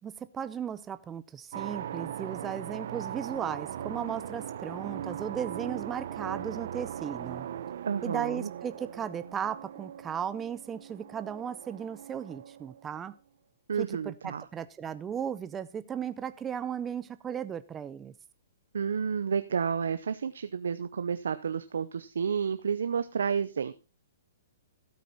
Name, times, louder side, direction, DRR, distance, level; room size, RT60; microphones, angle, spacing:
voice 1, 0.0-7.5 8.0-13.1 13.8-18.1, right 8 dB, 15° right, 13 dB, 0.5 m, -36 dB
sound 1, 1.5-13.0, right 9 dB, 60° right, 1.0 m, -39 dB
voice 2, 7.9-8.5 13.7-14.4 18.7-23.7, right 6 dB, 85° right, 11 dB, 0.7 m, -30 dB
13.0 x 8.3 x 4.1 m, 0.30 s
hypercardioid pair, 150°, 0 cm